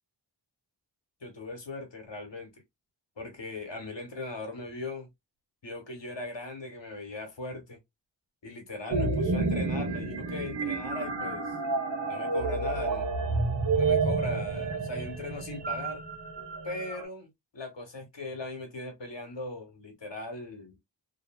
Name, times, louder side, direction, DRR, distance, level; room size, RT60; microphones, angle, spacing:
voice 1, 1.2-2.6 3.2-5.1 5.6-7.8 8.4-11.6 12.1-13.1 13.8-16.0 16.6-20.8, left 2 dB, 70° left, 1.3 m, -39 dB
sound 1, 8.9-17.0, right 3 dB, 65° right, 1.0 m, -30 dB
2.7 x 2.6 x 2.2 m
wide cardioid pair, 40°, 45 cm